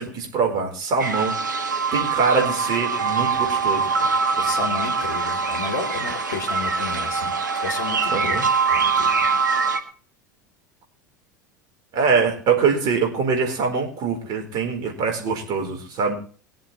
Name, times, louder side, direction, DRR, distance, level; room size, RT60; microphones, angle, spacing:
voice 1, 0.0-1.3 1.9-4.1 4.4-4.6 8.1-8.4 11.9-16.2, right 5 dB, 45° right, 3 dB, 4.4 m, -23 dB
sound 1, 1.0-9.8, right 5 dB, 80° right, 1.5 m, -23 dB
voice 2, 4.4-7.3 7.6-8.4 8.7-9.3, left 5 dB, 70° left, 4 dB, 2.4 m, -32 dB
22.0 x 7.8 x 3.3 m, 0.42 s
figure-of-eight pair, 75°, 10 cm